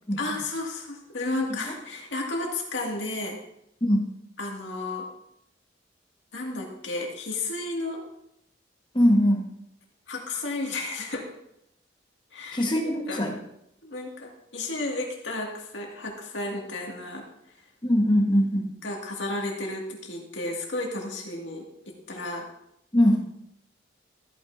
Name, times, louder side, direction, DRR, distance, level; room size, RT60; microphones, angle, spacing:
voice 1, 0.2-3.4 4.4-5.1 6.3-8.0 10.1-11.3 12.3-13.3 13.8-17.6 18.8-22.5, left 2 dB, 85° left, 0 dB, 2.1 m, -33 dB
voice 2, 8.9-9.5 12.5-13.4 17.8-18.7 22.9-23.2, equal, 25° left, 2 dB, 1.3 m, -21 dB
14.0 x 8.9 x 2.6 m, 0.77 s
head